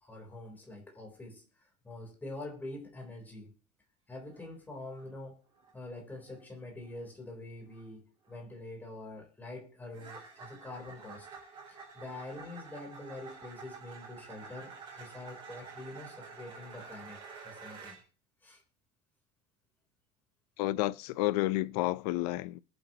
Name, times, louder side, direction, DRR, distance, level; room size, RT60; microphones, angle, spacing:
voice 1, 0.0-1.4 1.8-3.5 4.1-5.4 5.7-11.3 11.7-17.2 17.4-18.0 18.4-18.6, left 2 dB, 10° left, 3.6 m, -45 dB
sound 1, 4.3-4.5 4.8-5.2 5.5-5.8 6.2-6.4 6.8-7.1 7.7-7.9 8.2-8.4 9.9-18.0, right 5 dB, 25° right, 3.9 m, -49 dB
voice 2, 20.6-22.6, left 17 dB, 80° left, 0.7 m, -30 dB
21.0 x 8.1 x 3.0 m
cardioid pair, 180°, 20 cm